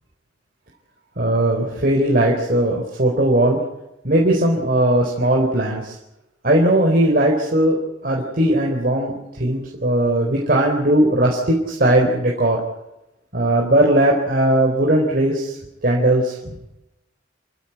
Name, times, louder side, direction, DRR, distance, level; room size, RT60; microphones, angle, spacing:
voice 1, 1.2-3.6 4.0-5.9 6.4-7.8 8.0-12.6 13.3-15.6 15.8-16.6, right 1 dB, 50° right, -1 dB, 4.0 m, -18 dB
28.0 x 15.0 x 8.1 m, 0.92 s
head